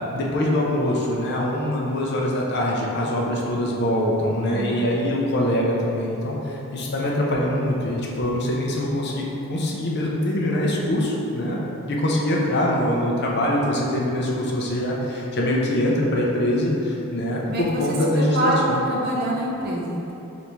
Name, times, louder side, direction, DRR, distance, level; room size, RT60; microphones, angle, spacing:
voice 1, 0.0-11.6 11.9-18.8, left 1 dB, 50° left, -3 dB, 0.6 m, -23 dB
voice 2, 4.4-4.9 17.5-17.8 18.2-18.6 18.9-20.1, right 1 dB, 45° right, -4 dB, 0.6 m, -26 dB
4.1 x 3.3 x 3.0 m, 3.0 s
head